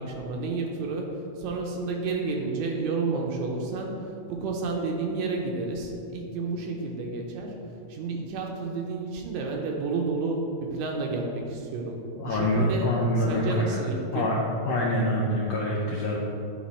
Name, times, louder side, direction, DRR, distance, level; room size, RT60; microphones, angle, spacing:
voice 1, 0.0-3.9 4.3-7.6 7.9-12.9 13.2-14.3, right 3 dB, 75° right, 1 dB, 1.9 m, -31 dB
voice 2, 12.2-13.8 14.1-14.4 14.6-16.2, left 1 dB, 80° left, -3 dB, 1.4 m, -25 dB
9.4 x 3.9 x 4.2 m, 2.8 s
omnidirectional pair, 3.6 m